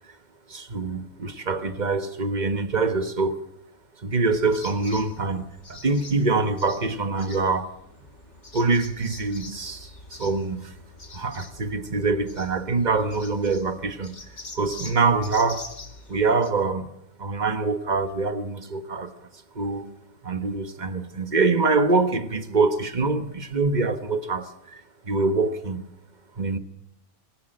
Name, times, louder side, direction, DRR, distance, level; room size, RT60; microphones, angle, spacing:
voice 1, 0.5-3.4 4.0-7.7 8.5-10.7 11.1-14.2 14.5-15.7 16.1-16.9 17.2-19.3 19.5-19.9 20.2-25.8 26.4-26.6, right 3 dB, 30° right, 1.4 m, -25 dB
sound 1, 4.3-16.5, left 3 dB, 50° left, 2.6 m, -44 dB
24.0 x 16.5 x 7.8 m
omnidirectional pair, 1.5 m